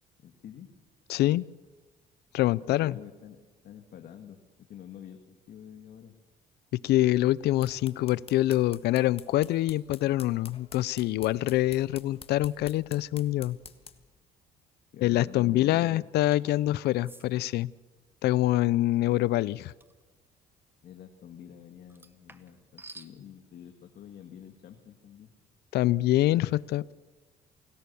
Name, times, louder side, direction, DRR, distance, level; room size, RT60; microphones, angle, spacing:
voice 1, 0.2-0.7 2.7-6.2 14.9-16.0 20.8-25.3, left 9 dB, 60° left, 4 dB, 2.0 m, -48 dB
voice 2, 1.1-1.4 2.3-3.0 6.7-13.6 15.0-17.7 18.2-19.7 25.7-26.9, left 15 dB, 75° left, 20 dB, 0.7 m, -25 dB
sound 1, 7.3-14.1, left 6 dB, 35° left, 1.5 m, -50 dB
sound 2, 16.3-16.6 17.0-17.3 19.8-20.0 21.9-23.1, right 2 dB, 15° right, 1.4 m, -50 dB
28.0 x 19.0 x 7.0 m, 1.3 s
cardioid pair, 110°, 17 cm